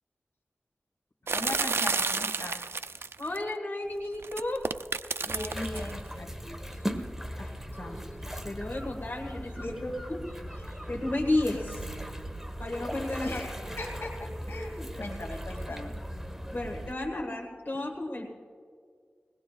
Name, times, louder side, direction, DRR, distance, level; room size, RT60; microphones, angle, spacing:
voice 1, 1.3-3.1 5.2-6.8 8.3-8.5 9.6-10.1 10.7-10.9 13.2-15.9, left 2 dB, 75° left, 2 dB, 2.4 m, -39 dB
sound 1, 1.3-3.4 4.2-5.9, right 4 dB, 80° right, 0.4 m, -30 dB
voice 2, 3.2-4.7 7.4-8.0 8.4-9.5 10.1-10.2 10.9-11.8 12.6-13.4 16.5-18.3, left 2 dB, 50° left, -1 dB, 1.7 m, -32 dB
sound 2, 5.3-16.9, equal, 10° right, 1.3 m, -38 dB
21.5 x 18.5 x 2.4 m, 2.1 s
cardioid pair, 40°, 4 cm